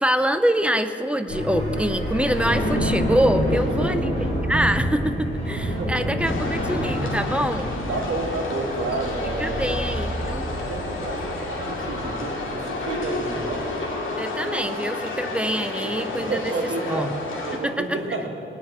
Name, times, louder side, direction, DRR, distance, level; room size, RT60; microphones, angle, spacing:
voice 1, 0.0-4.1 4.5-7.7 9.4-10.5 14.2-16.4 16.9-17.2 17.6-18.0, equal, 5° right, 8 dB, 0.6 m, -25 dB
sound 1, 1.3-13.7, equal, 35° left, 4.0 m, -28 dB
voice 2, 3.6-4.0 5.7-5.9 7.9-9.8 10.7-13.7 15.8-16.0 16.3-17.1 17.4-18.3, right 3 dB, 85° right, 0 dB, 2.2 m, -30 dB
sound 2, 6.2-17.6, left 2 dB, 75° left, 2.4 m, -31 dB
19.0 x 6.8 x 8.9 m, 2.8 s
wide cardioid pair, 150°, 20 cm